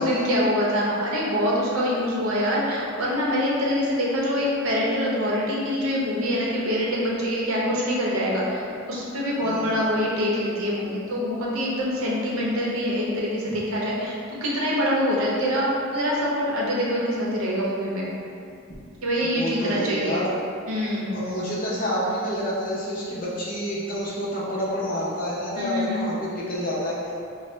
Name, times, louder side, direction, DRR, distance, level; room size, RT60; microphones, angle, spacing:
voice 1, 0.0-18.1 19.0-20.2 20.7-21.1 25.5-26.0, equal, 85° right, -5 dB, 0.8 m, -25 dB
voice 2, 9.4-9.9 13.5-13.6 19.2-20.3 21.1-27.1, equal, 40° left, -7 dB, 0.7 m, -28 dB
4.2 x 2.0 x 3.2 m, 2.5 s
head